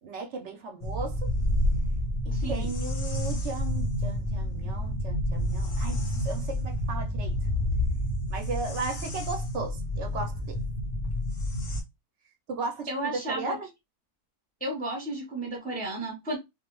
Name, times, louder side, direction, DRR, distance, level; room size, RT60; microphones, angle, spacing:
voice 1, 0.0-1.3 2.2-7.3 8.3-10.6 12.5-13.7, right 3 dB, 60° right, 0.8 m, -36 dB
sound 1, 0.8-11.8, left 1 dB, 60° left, 0.7 m, -29 dB
voice 2, 2.3-2.7 12.9-13.5 14.6-16.4, right 1 dB, 10° left, 0.5 m, -33 dB
2.4 x 2.0 x 2.9 m
omnidirectional pair, 1.6 m